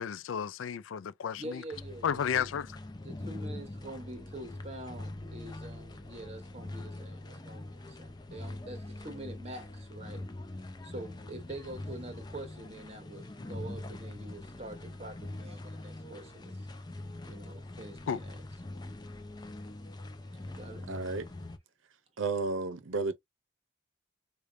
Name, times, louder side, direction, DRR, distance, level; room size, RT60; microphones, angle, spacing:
voice 1, 0.0-1.6 2.0-2.7 18.1-18.2, left 7 dB, 85° left, 0.4 m, -32 dB
voice 2, 1.4-2.5 3.0-10.2 10.8-16.6 17.2-18.4 20.5-20.8, right 1 dB, 30° right, 1.0 m, -45 dB
sound 1, 1.7-21.6, left 1 dB, 20° left, 0.5 m, -43 dB
voice 3, 20.9-21.3 22.2-23.1, right 3 dB, 85° right, 0.6 m, -32 dB
4.9 x 2.3 x 2.5 m
head